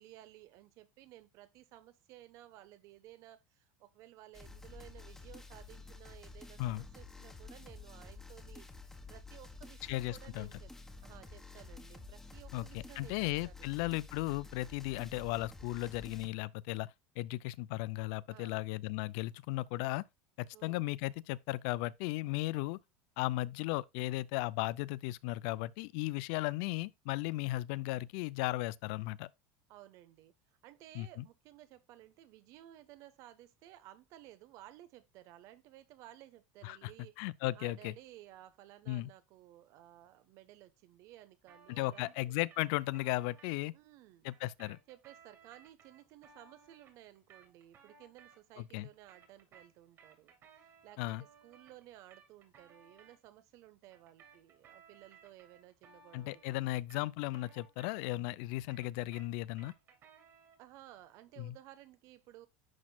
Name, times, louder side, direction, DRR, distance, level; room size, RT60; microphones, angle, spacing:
voice 1, 0.0-8.7 9.1-10.7 11.0-13.7 18.3-18.6 20.5-20.9 29.7-30.3 30.6-37.2 37.5-42.3 43.7-44.3 44.9-56.8 60.6-62.5, right 14 dB, 55° right, 0.9 m, -56 dB
sound 1, 4.3-16.3, left 3 dB, 5° left, 1.4 m, -51 dB
voice 2, 9.9-10.5 12.5-16.9 17.2-20.0 20.4-22.8 23.2-29.3 30.9-31.2 36.6-36.9 37.2-37.9 38.9-39.1 41.7-43.7 44.2-44.8 48.6-48.9 51.0-51.2 56.1-59.7 61.4-61.6, left 18 dB, 70° left, 0.4 m, -36 dB
sound 2, 41.5-43.6 44.3-48.7 48.9-53.2 53.9-58.3 58.5-60.7, right 6 dB, 40° right, 2.6 m, -61 dB
11.0 x 4.3 x 2.2 m
supercardioid pair, 130°, 6 cm